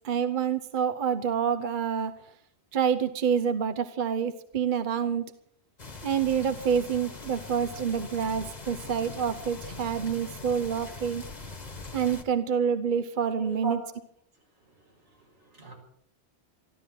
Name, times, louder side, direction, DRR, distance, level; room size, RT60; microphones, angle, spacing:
voice 1, 0.0-2.2 2.7-5.3 6.0-11.3 11.9-13.8, right 7 dB, 50° right, 0.9 m, -27 dB
sound 1, 5.8-12.2, left 3 dB, 35° left, 1.5 m, -42 dB
voice 2, 13.3-13.8 14.6-15.7, right 5 dB, 80° right, 5.3 m, -40 dB
13.5 x 13.0 x 7.5 m
omnidirectional pair, 1.2 m